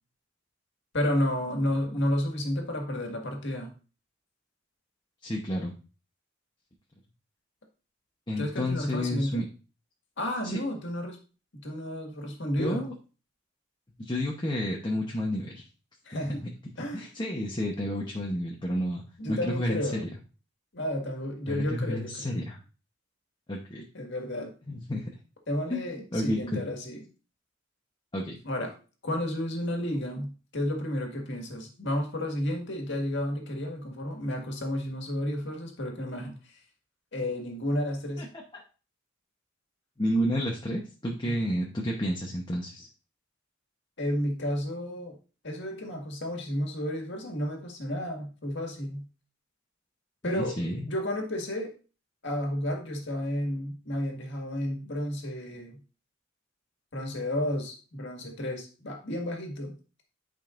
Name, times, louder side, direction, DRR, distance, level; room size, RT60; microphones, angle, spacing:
voice 1, 0.9-3.7 8.4-9.4 10.2-11.2 11.6-12.9 16.0-16.4 16.8-17.1 19.2-20.0 20.7-22.4 23.9-24.5 25.5-27.1 28.4-28.7 29.0-36.4 37.1-38.3 41.2-41.3 44.0-45.2 45.4-49.0 50.2-51.7 52.2-55.8 56.9-59.7, left 1 dB, 60° left, 2 dB, 1.9 m, -32 dB
voice 2, 5.2-5.7 8.3-9.4 10.4-10.6 12.6-12.9 14.0-15.6 16.4-16.5 16.9-19.0 19.3-20.0 21.5-22.6 23.5-23.8 24.7-25.1 25.7-26.6 28.1-28.4 38.2-38.3 38.5-38.6 40.0-42.9 50.2-50.8, equal, 25° left, -1 dB, 1.0 m, -30 dB
10.5 x 5.3 x 2.6 m, 0.35 s
head